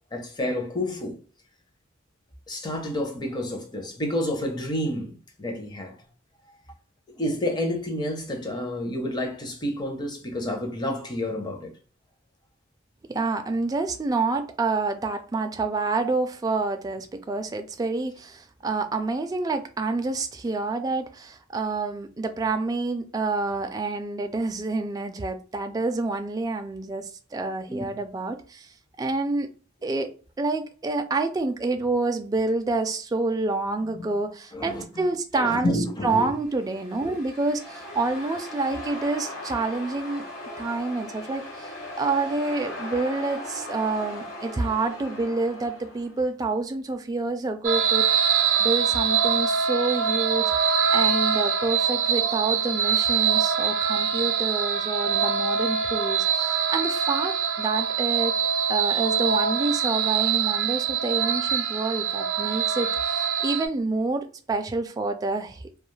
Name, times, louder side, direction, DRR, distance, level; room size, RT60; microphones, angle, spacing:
voice 1, 0.1-1.2 2.5-5.9 7.2-11.8 27.7-27.9 33.9-34.1 34.5-34.9 35.3-36.3 37.1-37.2, left 1 dB, 20° left, 0.6 m, -29 dB
voice 2, 13.1-28.7 29.0-29.5 29.8-30.1 30.4-35.7 36.0-40.2 40.6-50.5 50.9-58.3 58.7-65.7, right 3 dB, 20° right, 0.3 m, -28 dB
sound 1, 36.3-46.2, left 1 dB, 85° left, 1.0 m, -38 dB
sound 2, 47.6-63.7, right 7 dB, 80° right, 0.5 m, -24 dB
2.3 x 2.2 x 3.1 m
head